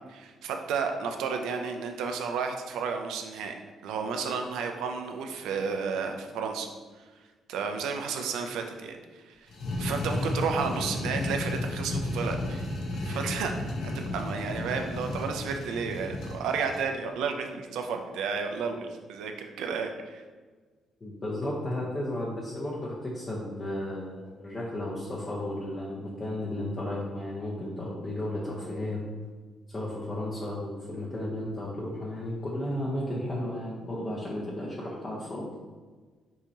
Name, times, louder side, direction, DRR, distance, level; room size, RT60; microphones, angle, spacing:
voice 1, 0.1-3.5 3.8-6.7 7.5-9.5 9.8-12.7 13.0-13.7 14.1-20.2, right 5 dB, 90° right, 5 dB, 0.5 m, -32 dB
sound 1, 9.5-16.9, left 2 dB, 70° left, 0.8 m, -33 dB
voice 2, 21.0-29.0 29.7-35.5, left 1 dB, 30° left, -5 dB, 0.9 m, -34 dB
5.5 x 3.0 x 2.8 m, 1.4 s
cardioid pair, 90°, 0 cm